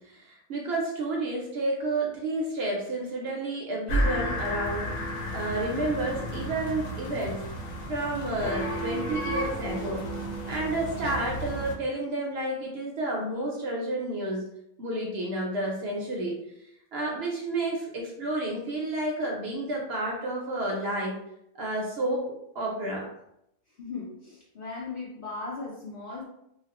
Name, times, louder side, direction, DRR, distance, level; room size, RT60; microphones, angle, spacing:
voice 1, 0.0-4.9 5.3-7.4 7.9-10.0 10.5-14.5 14.8-16.3 16.9-21.2 21.5-23.1, right 2 dB, 60° right, -1 dB, 0.7 m, -30 dB
sound 1, 3.9-11.7, equal, 75° left, 1.1 m, -32 dB
voice 2, 23.8-26.2, left 3 dB, 55° left, -5 dB, 0.6 m, -37 dB
3.0 x 2.4 x 2.9 m, 0.79 s
omnidirectional pair, 1.4 m